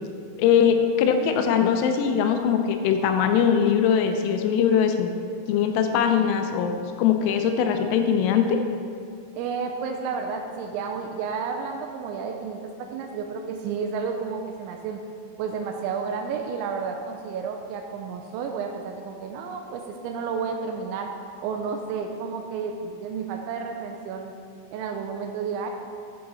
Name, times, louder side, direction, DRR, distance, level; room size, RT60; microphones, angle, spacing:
voice 1, 0.4-5.1 5.5-8.6, left 7 dB, 85° left, 6 dB, 3.1 m, -21 dB
voice 2, 9.4-15.0 15.4-21.1 21.4-24.3 24.7-25.7, right 5 dB, 90° right, 3 dB, 2.6 m, -31 dB
8.5 x 7.7 x 4.1 m, 2.3 s
omnidirectional pair, 5.9 m